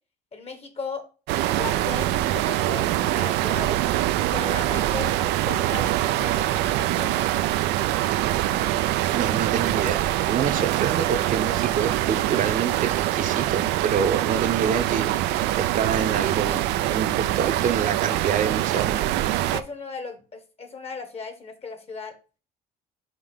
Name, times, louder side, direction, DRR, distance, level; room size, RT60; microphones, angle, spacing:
voice 1, 0.3-1.0 1.6-3.8 4.3-7.3 10.5-10.7 19.5-22.2, left 4 dB, 35° left, 7 dB, 1.4 m, -36 dB
sound 1, 1.3-19.6, right 14 dB, 90° right, 0.5 m, -24 dB
voice 2, 9.1-19.2, right 7 dB, 50° right, 6 dB, 0.8 m, -27 dB
5.3 x 3.3 x 5.5 m, 0.34 s
cardioid pair, 110°, 17 cm